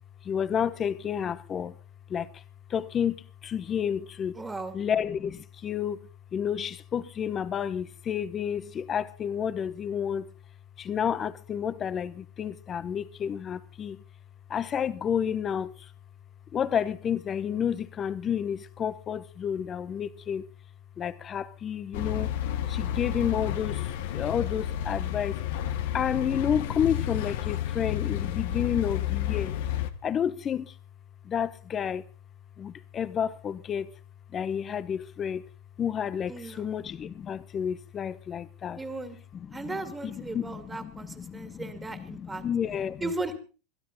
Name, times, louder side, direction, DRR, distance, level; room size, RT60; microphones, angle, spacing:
voice 1, 0.2-1.7 2.1-2.4 2.7-4.4 4.7-6.0 6.3-10.3 10.8-14.0 14.5-15.9 16.5-20.5 21.0-22.3 22.7-23.9 24.1-25.4 25.9-29.5 30.0-30.7 31.2-32.0 32.6-33.9 34.3-35.5 35.8-38.8 39.3-39.8 40.0-43.1, left 8 dB, 30° left, 1.0 m, -30 dB
voice 2, 4.4-4.7 36.3-36.6 38.8-39.2 39.5-42.4 43.0-43.4, right 2 dB, 15° right, 2.5 m, -36 dB
sound 1, 21.9-29.9, left 11 dB, 75° left, 1.5 m, -31 dB
22.5 x 12.5 x 4.1 m
hypercardioid pair, 110°, 0 cm